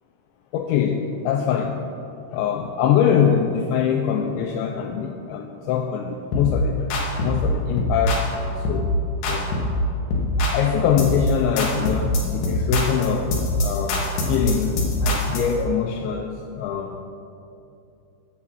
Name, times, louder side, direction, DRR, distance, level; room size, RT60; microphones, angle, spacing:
voice 1, 0.5-1.8 2.3-6.8 7.2-8.9 9.3-9.5 10.5-13.3 13.6-14.0 14.3-14.7 15.0-16.9, left 8 dB, 90° left, 4 dB, 2.6 m, -23 dB
sound 1, 6.3-6.5 6.9-7.4 7.8-8.3 8.6-8.9 9.2-9.8 10.1-10.6 11.0-11.3 11.6-15.5, left 1 dB, 65° left, 2.1 m, -23 dB
14.0 x 8.4 x 4.7 m, 2.8 s
omnidirectional pair, 5.8 m